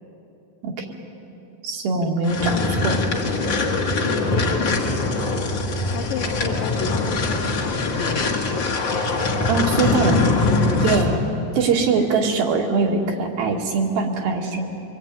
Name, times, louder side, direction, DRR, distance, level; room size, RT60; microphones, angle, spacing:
voice 1, 1.6-3.0 9.5-10.2 10.7-11.2 11.5-14.7, right 4 dB, 70° right, 1 dB, 4.0 m, -22 dB
sound 1, 2.2-11.2, left 3 dB, 40° left, 2.0 m, -22 dB
voice 2, 4.0-5.1 5.9-9.7 11.9-12.1, left 7 dB, 70° left, 7 dB, 2.7 m, -33 dB
25.0 x 22.5 x 9.3 m, 3.0 s
omnidirectional pair, 4.5 m